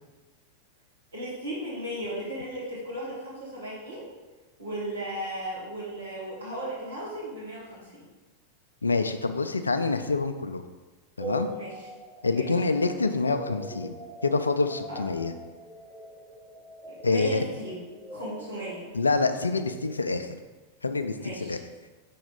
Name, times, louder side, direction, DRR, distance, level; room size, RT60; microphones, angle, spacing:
voice 1, 1.1-4.0 4.6-8.0 11.5-11.7 12.3-12.5 14.9-15.0 17.0-17.8 18.1-18.9 21.2-21.6, right 1 dB, 70° right, -6 dB, 1.8 m, -35 dB
voice 2, 8.8-10.6 11.2-11.5 12.2-13.9 14.2-15.3 17.0-17.4 18.9-20.4 20.8-21.6, left 3 dB, 75° left, 9 dB, 0.4 m, -26 dB
sound 1, 11.2-20.3, right 2 dB, 15° right, 0.8 m, -42 dB
5.8 x 4.2 x 3.9 m, 1.3 s
figure-of-eight pair, 90°, 0 cm